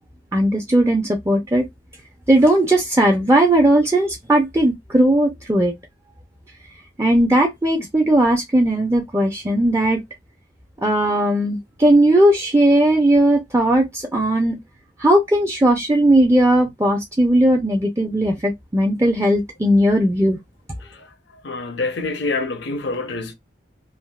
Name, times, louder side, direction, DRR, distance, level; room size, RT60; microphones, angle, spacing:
voice 1, 0.3-1.7 2.3-5.7 7.0-10.0 10.8-14.6 15.0-20.4, right 1 dB, 15° right, 0.5 m, -17 dB
voice 2, 21.4-23.3, left 3 dB, 65° left, 0.7 m, -26 dB
3.4 x 2.3 x 2.3 m
head